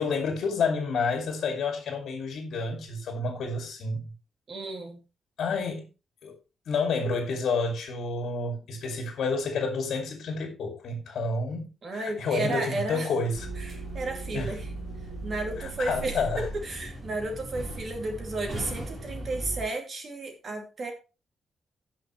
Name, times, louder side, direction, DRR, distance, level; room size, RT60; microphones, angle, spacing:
voice 1, 0.0-4.1 5.4-5.8 6.2-6.3 6.7-13.5 14.3-14.5 15.6-16.5, left 4 dB, 60° left, 2.4 m, -29 dB
voice 2, 4.5-5.0 11.8-13.1 13.6-14.7 15.2-20.9, right 2 dB, 35° right, 2.5 m, -33 dB
sound 1, 13.3-19.6, right 2 dB, 20° right, 3.6 m, -37 dB
17.5 x 5.9 x 3.1 m
wide cardioid pair, 170°, 0 cm